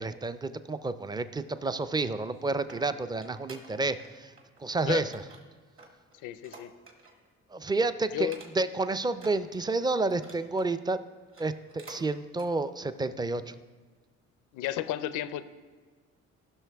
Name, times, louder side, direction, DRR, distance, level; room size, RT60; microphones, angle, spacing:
voice 1, 0.0-4.3 4.6-5.2 7.5-11.0 11.4-13.5, right 3 dB, 15° right, 12 dB, 0.4 m, -30 dB
sound 1, 2.3-4.1 4.4-4.7 5.1-7.3 7.6-7.8 8.2-8.8 9.1-10.7 11.2-12.0 12.3-12.5 13.0-13.1, right 2 dB, 45° right, 1.8 m, -51 dB
voice 2, 6.2-6.7 8.1-8.4 14.5-15.4, left 13 dB, 90° left, 14 dB, 0.5 m, -32 dB
15.5 x 6.0 x 3.4 m, 1.4 s
cardioid pair, 90°, 30 cm